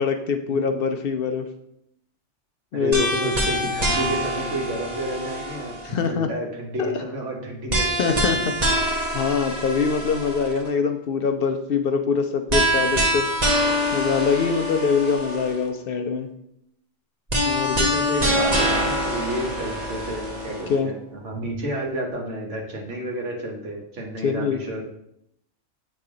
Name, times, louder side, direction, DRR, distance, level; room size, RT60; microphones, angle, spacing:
voice 1, 0.0-1.5 2.7-3.3 5.8-6.3 6.8-6.9 8.0-8.8 9.1-13.3 13.9-16.3 17.4-17.9 20.7-20.9 24.2-24.6, left 5 dB, 60° left, 6 dB, 0.6 m, -24 dB
voice 2, 2.7-8.5 17.9-24.8, right 1 dB, 80° right, -1 dB, 1.6 m, -30 dB
sound 1, 2.9-6.1 7.7-10.7 12.5-15.7 17.3-20.7, equal, 35° right, 1.1 m, -25 dB
8.2 x 3.2 x 3.7 m, 0.77 s
omnidirectional pair, 1.2 m